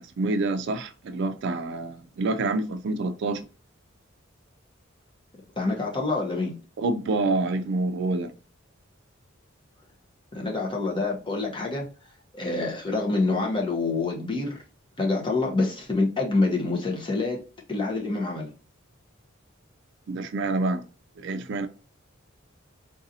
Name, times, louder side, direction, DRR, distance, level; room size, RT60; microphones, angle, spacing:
voice 1, 0.2-3.4 6.8-8.3 20.1-20.8 21.2-21.7, right 2 dB, 60° right, 0.4 m, -27 dB
voice 2, 5.6-6.5 10.3-11.9 12.3-14.6 15.0-18.5, left 3 dB, 25° left, 0.8 m, -26 dB
3.9 x 2.6 x 2.7 m
head